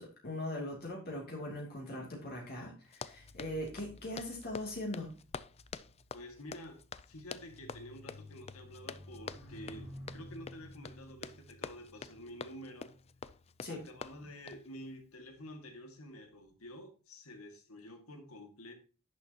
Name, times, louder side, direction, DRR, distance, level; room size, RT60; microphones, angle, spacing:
voice 1, 0.0-5.1 13.6-13.8, left 1 dB, 50° left, -2 dB, 2.6 m, -40 dB
Run, 2.8-14.7, left 5 dB, 30° left, 0.4 m, -47 dB
sound 1, 3.1-14.7 15.4-15.7, equal, 65° left, 3.9 m, -54 dB
voice 2, 6.1-6.8 7.1-12.9 13.7-18.7, left 1 dB, 85° left, 5 dB, 2.0 m, -49 dB
10.5 x 6.8 x 2.9 m, 0.35 s
head